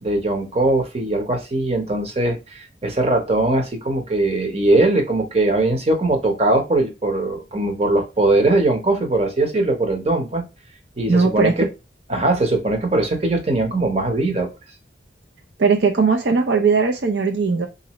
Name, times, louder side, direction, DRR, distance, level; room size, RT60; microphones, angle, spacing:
voice 1, 0.0-10.4 11.0-11.7 12.1-14.5, right 2 dB, 35° right, 3 dB, 1.0 m, -20 dB
voice 2, 11.1-11.5 15.6-17.7, right 4 dB, 70° right, 3 dB, 0.6 m, -18 dB
3.8 x 2.7 x 3.0 m, 0.26 s
head